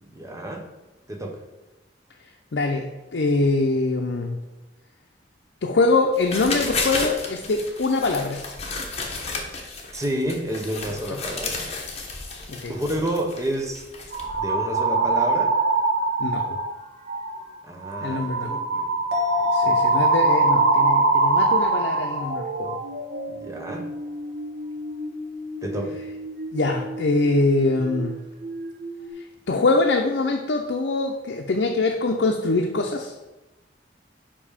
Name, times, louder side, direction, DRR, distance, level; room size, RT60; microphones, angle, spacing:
voice 1, 0.0-0.7 1.1-1.4 9.9-11.7 12.7-13.8 14.4-15.6 17.7-18.9 19.4-20.0 23.3-23.9 25.6-26.0, right 1 dB, 20° right, 2 dB, 0.9 m, -30 dB
voice 2, 2.5-4.4 5.6-8.4 12.5-12.7 16.2-16.4 18.0-18.5 19.5-22.8 26.5-28.1 29.5-33.1, left 3 dB, 75° left, 1 dB, 0.6 m, -23 dB
sound 1, 6.1-14.4, left 3 dB, 35° left, 1.2 m, -32 dB
sound 2, 14.1-16.7 17.1-17.4 17.8-28.2 28.4-29.1, right 3 dB, 55° right, 1.0 m, -24 dB
sound 3, 19.1-22.8 23.1-23.2, left 9 dB, 85° right, 1.5 m, -30 dB
5.4 x 5.2 x 5.0 m, 1.1 s
head